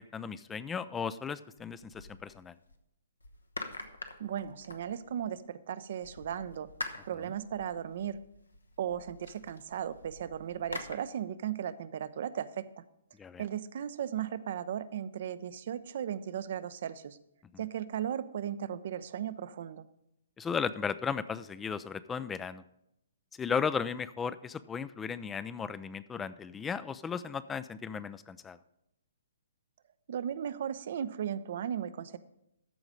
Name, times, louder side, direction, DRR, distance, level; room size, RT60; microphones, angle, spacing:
voice 1, 0.1-2.5 13.2-13.4 20.4-22.6 23.4-28.6, left 6 dB, 15° left, 15 dB, 0.3 m, -35 dB
sound 1, 1.6-2.8 3.2-5.4 6.0-11.0, left 2 dB, 85° left, 1.0 m, -46 dB
voice 2, 4.2-6.7 7.0-8.2 8.8-12.8 13.4-17.2 17.6-19.8 30.1-32.2, right 9 dB, 50° right, 15 dB, 0.5 m, -36 dB
13.5 x 4.9 x 5.2 m, 0.80 s
figure-of-eight pair, 125°, 0 cm